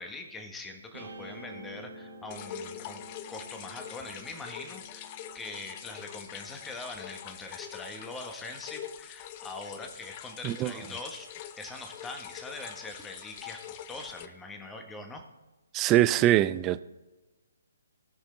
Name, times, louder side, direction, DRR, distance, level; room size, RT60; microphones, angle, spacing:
voice 1, 0.0-3.0 3.3-11.3 11.6-15.2, left 2 dB, 10° left, 1.4 m, -43 dB
Guitar, 0.9-7.4, right 1 dB, 70° right, 2.1 m, -49 dB
sound 1, 2.3-14.3, left 10 dB, 30° left, 0.6 m, -44 dB
voice 2, 15.7-16.8, right 13 dB, 20° right, 0.4 m, -23 dB
19.0 x 6.5 x 3.9 m
figure-of-eight pair, 135°, 0 cm